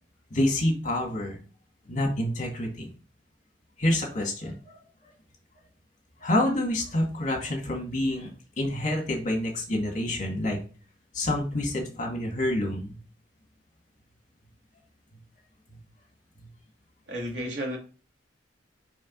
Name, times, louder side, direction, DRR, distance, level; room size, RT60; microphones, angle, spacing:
voice 1, 0.3-1.4 1.9-2.9 3.8-4.8 6.2-8.3 8.6-10.6 11.1-13.0, left 1 dB, 45° left, 0 dB, 2.3 m, -27 dB
voice 2, 17.1-17.8, equal, 70° right, -1 dB, 2.6 m, -32 dB
5.4 x 5.3 x 4.0 m, 0.36 s
head